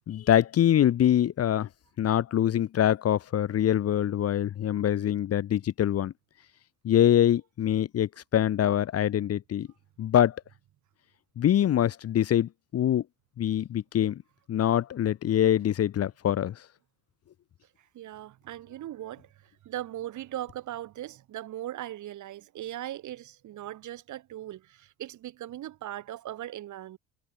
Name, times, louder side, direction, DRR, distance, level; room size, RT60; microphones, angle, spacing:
voice 1, 0.1-1.7 2.0-6.1 6.8-9.7 10.0-10.4 11.4-13.0 13.4-14.2 14.5-16.6, left 11 dB, 45° left, 1.2 m, -24 dB
voice 2, 17.9-19.3 19.6-27.0, right 13 dB, 60° right, 4.0 m, -39 dB
supercardioid pair, 75°, 33 cm